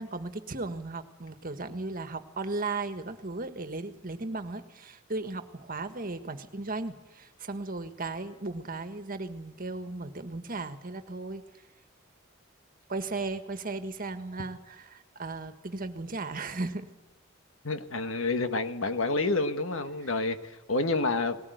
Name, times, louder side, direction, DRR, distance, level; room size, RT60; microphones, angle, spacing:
voice 1, 0.0-11.4 12.9-16.9 20.0-20.1, right 3 dB, 45° right, 9 dB, 1.6 m, -36 dB
voice 2, 17.6-21.4, left 3 dB, 80° left, 9 dB, 1.6 m, -29 dB
20.0 x 19.0 x 9.4 m, 1.1 s
head